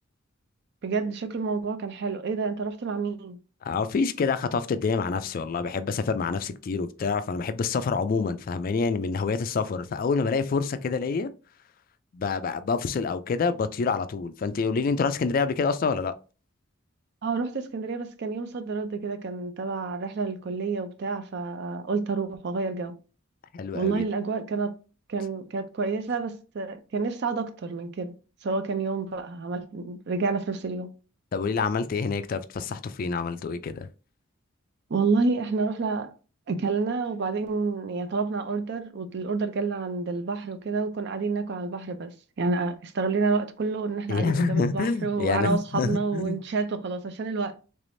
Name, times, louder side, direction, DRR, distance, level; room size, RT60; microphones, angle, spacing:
voice 1, 0.8-3.4 17.2-23.0 23.7-24.8 25.1-28.1 28.4-30.9 34.9-36.1 36.5-47.6, right 4 dB, 55° right, 0.5 m, -29 dB
voice 2, 3.6-11.3 12.1-16.1 23.5-24.0 31.3-33.9 44.1-46.4, left 4 dB, 45° left, 0.3 m, -27 dB
3.4 x 3.3 x 2.6 m
head